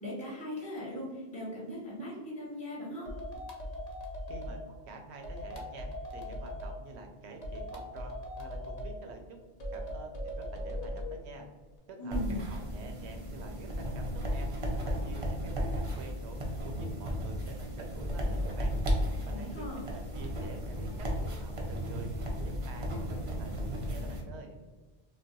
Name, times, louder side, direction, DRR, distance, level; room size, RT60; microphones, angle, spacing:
voice 1, 0.0-3.1 12.0-12.4 19.3-19.8, equal, 5° left, -6 dB, 0.9 m, -39 dB
sound 1, 3.1-4.6 5.2-6.7 7.4-8.9 9.6-11.1, equal, 45° left, 0.6 m, -39 dB
voice 2, 4.3-9.4 9.7-11.5 11.9-12.2 12.5-14.5 14.7-18.8 19.2-22.1 22.4-24.6, right 3 dB, 90° right, 3 dB, 0.9 m, -48 dB
sound 2, 12.1-24.2, equal, 40° right, 0.5 m, -34 dB
2.3 x 2.3 x 3.9 m, 1.3 s
omnidirectional pair, 1.1 m